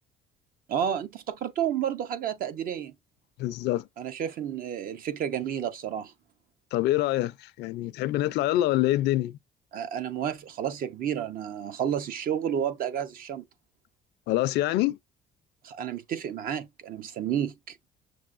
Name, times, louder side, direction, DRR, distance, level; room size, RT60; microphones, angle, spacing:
voice 1, 0.7-2.9 4.0-6.1 9.7-13.4 15.6-17.8, right 9 dB, 60° right, 0.6 m, -31 dB
voice 2, 3.4-3.8 6.7-9.3 14.3-15.0, left 15 dB, 80° left, 0.4 m, -25 dB
6.2 x 2.5 x 2.4 m
cardioid pair, 110°, 17 cm